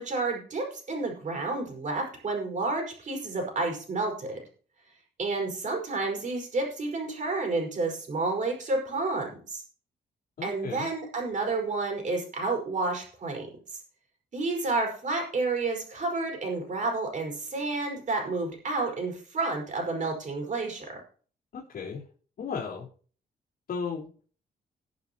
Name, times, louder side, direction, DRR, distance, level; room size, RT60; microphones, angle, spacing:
voice 1, 0.0-4.4 5.2-9.6 10.4-13.5 14.3-21.0, right 3 dB, 45° right, 2 dB, 4.9 m, -30 dB
voice 2, 10.4-10.9 21.5-22.0 22.4-22.9 23.7-24.2, left 5 dB, 60° left, -10 dB, 3.9 m, -35 dB
20.0 x 7.0 x 3.0 m, 0.42 s
cardioid pair, 120°, 17 cm